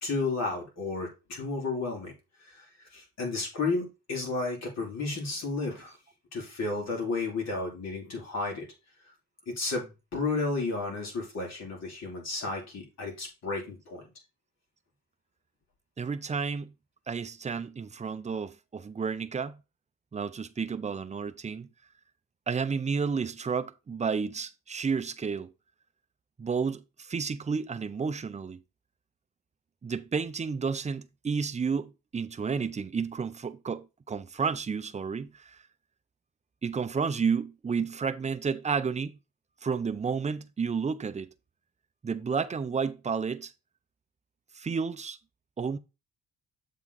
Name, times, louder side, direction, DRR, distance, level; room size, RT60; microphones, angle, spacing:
voice 1, 0.0-2.1 2.4-6.0 6.3-8.7 9.5-14.0, left 3 dB, 60° left, 3.1 m, -32 dB
voice 2, 16.0-16.7 17.1-19.6 20.1-21.7 22.5-25.5 26.4-28.6 29.8-35.6 36.6-39.2 39.6-41.3 42.0-43.5 44.5-45.2 45.6-45.8, right 5 dB, 25° right, 0.6 m, -31 dB
7.3 x 3.8 x 4.0 m
cardioid pair, 90°, 30 cm